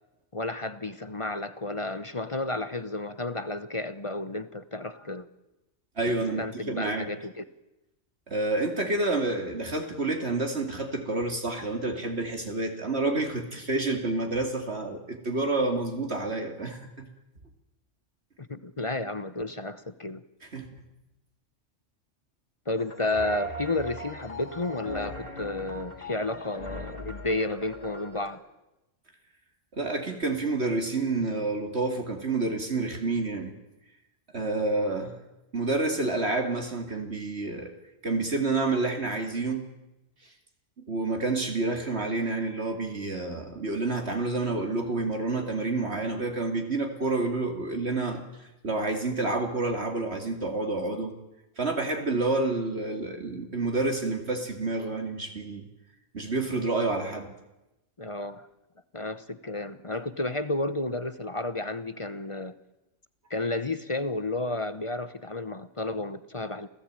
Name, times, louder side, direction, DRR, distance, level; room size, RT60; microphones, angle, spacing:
voice 1, 0.3-5.3 6.4-7.4 18.4-20.2 22.7-28.4 58.0-58.5 58.9-62.5 63.3-66.7, left 2 dB, 30° left, 1.0 m, -32 dB
voice 2, 6.0-7.1 8.3-17.0 20.5-20.7 29.7-33.5 34.3-35.1 35.5-37.7 38.0-39.7 40.9-48.2 48.6-51.1 51.6-55.7 56.1-57.3, right 2 dB, 60° right, 2.8 m, -29 dB
sound 1, 22.8-28.3, equal, 50° left, 3.7 m, -39 dB
28.0 x 17.0 x 8.9 m
omnidirectional pair, 1.3 m